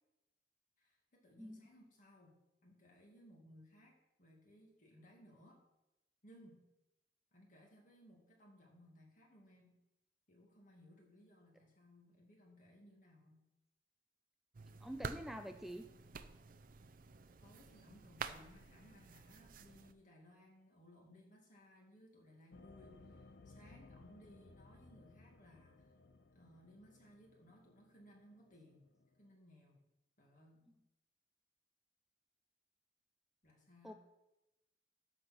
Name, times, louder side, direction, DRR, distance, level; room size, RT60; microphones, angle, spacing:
voice 1, 0.8-5.6 6.2-6.7 7.3-9.8 10.3-13.5 17.4-25.8 26.3-28.9 29.2-29.8 30.2-30.7 33.4-33.9, equal, 45° left, 0 dB, 2.3 m, -63 dB
sound 1, 14.5-19.9, right 5 dB, 55° right, 0.5 m, -50 dB
voice 2, 14.8-15.9 33.8-33.9, equal, ahead, 6 dB, 0.4 m, -46 dB
sound 2, 22.5-29.3, left 3 dB, 75° left, 0.8 m, -62 dB
13.0 x 4.3 x 6.0 m, 0.93 s
head